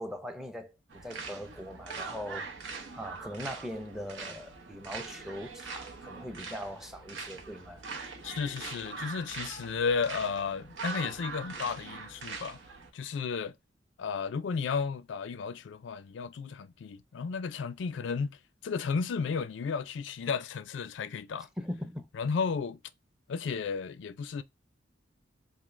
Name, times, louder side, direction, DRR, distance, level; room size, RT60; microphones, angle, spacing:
voice 1, 0.0-7.8 21.6-22.1, equal, ahead, 0.6 m, -41 dB
sound 1, 0.9-12.9, right 4 dB, 80° right, 0.9 m, -42 dB
voice 2, 8.2-12.6 12.9-13.5 14.0-18.4 18.6-21.5 22.1-22.8 23.3-24.4, left 5 dB, 70° left, 0.4 m, -33 dB
3.7 x 2.7 x 3.1 m
head